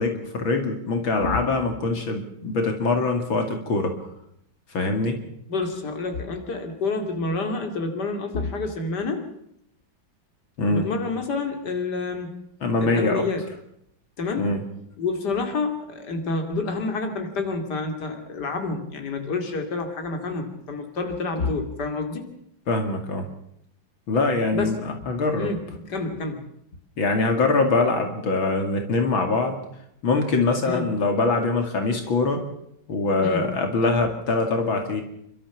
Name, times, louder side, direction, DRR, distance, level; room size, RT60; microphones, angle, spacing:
voice 1, 0.0-3.9 4.7-5.2 10.6-10.9 12.6-13.3 14.4-14.6 22.7-23.3 24.1-25.5 27.0-29.6 30.0-32.4 32.9-35.0, left 3 dB, 75° left, 5 dB, 3.2 m, -23 dB
voice 2, 5.5-9.2 10.7-12.3 12.8-13.4 14.2-14.5 15.0-22.3 24.5-24.7 25.4-25.6 25.8-26.4 30.7-30.9 33.1-33.4, left 3 dB, 55° left, 5 dB, 3.1 m, -28 dB
29.0 x 13.0 x 7.1 m, 0.75 s
omnidirectional pair, 2.2 m